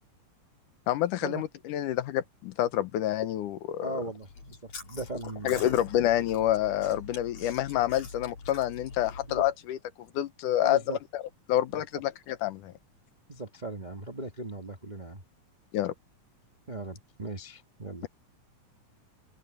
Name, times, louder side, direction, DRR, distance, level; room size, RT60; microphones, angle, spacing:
voice 1, 0.9-3.9 5.4-9.8 10.1-11.2 11.5-12.7 15.7-15.9, left 13 dB, 85° left, 2.5 m, -28 dB
voice 2, 3.8-5.8 9.3-9.5 10.6-11.0 13.3-15.2 16.7-18.1, right 2 dB, 75° right, 0.4 m, -38 dB
Chewing mastication, 4.2-9.5, left 4 dB, 60° left, 6.2 m, -44 dB
open air
omnidirectional pair, 3.6 m